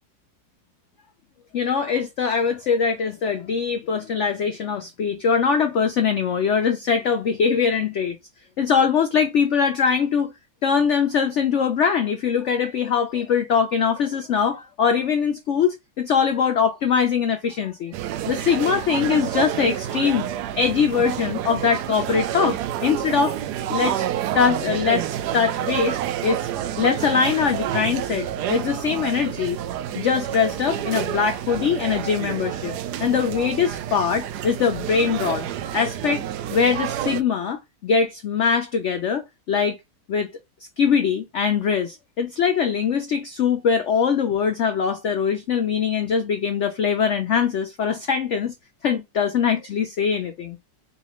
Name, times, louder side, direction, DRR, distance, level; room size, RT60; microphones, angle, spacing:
voice 1, 1.5-8.2 8.6-10.3 10.6-17.9 18.3-20.3 20.6-23.4 23.7-24.1 24.3-26.5 26.8-29.6 29.9-35.4 35.7-36.2 36.5-39.8 40.1-40.3 40.8-48.5 48.8-50.6, left 6 dB, 80° left, 0.6 m, -22 dB
sound 1, 17.9-37.2, right 11 dB, 75° right, 1.0 m, -29 dB
5.1 x 2.4 x 2.9 m
omnidirectional pair, 2.0 m